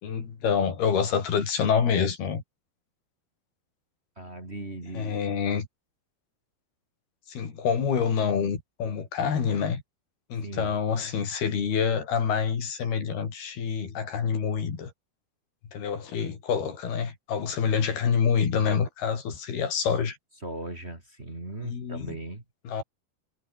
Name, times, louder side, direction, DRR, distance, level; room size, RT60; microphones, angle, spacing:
voice 1, 0.0-2.4 4.9-5.7 7.3-9.8 10.3-14.9 15.7-20.2 21.6-22.2 22.7-22.8, left 6 dB, 85° left, 6.0 m, -27 dB
voice 2, 4.2-5.2 10.4-10.7 20.4-22.4, right 2 dB, 15° right, 3.1 m, -38 dB
omnidirectional pair, 4.4 m